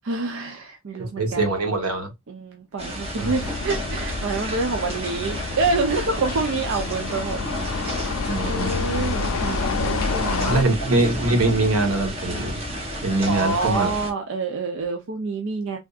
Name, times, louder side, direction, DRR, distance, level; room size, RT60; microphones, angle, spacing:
voice 1, 0.0-1.6 2.3-7.4 7.7-7.9 8.4-10.7 13.3-15.8, right 3 dB, 60° right, 0.5 m, -27 dB
voice 2, 1.0-2.1 3.2-3.3 8.3-8.7 10.4-12.6 13.0-13.9, right 2 dB, 85° right, 1.1 m, -23 dB
sound 1, 2.8-14.1, equal, 30° right, 0.9 m, -32 dB
sound 2, 3.2-10.6, left 4 dB, 75° left, 0.5 m, -29 dB
3.4 x 2.6 x 2.3 m
head